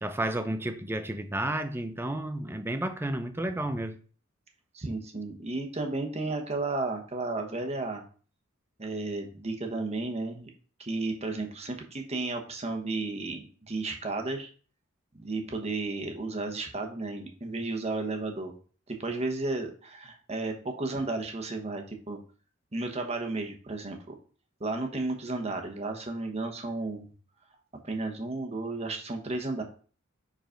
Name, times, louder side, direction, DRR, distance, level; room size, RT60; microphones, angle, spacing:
voice 1, 0.0-4.0, right 1 dB, 10° right, 0.5 m, -31 dB
voice 2, 4.7-8.0 8.8-10.5 10.8-14.5 15.1-18.5 18.9-22.2 22.7-24.0 24.6-27.1 27.8-29.6, right 2 dB, 30° right, 1.1 m, -33 dB
5.0 x 4.0 x 5.1 m
head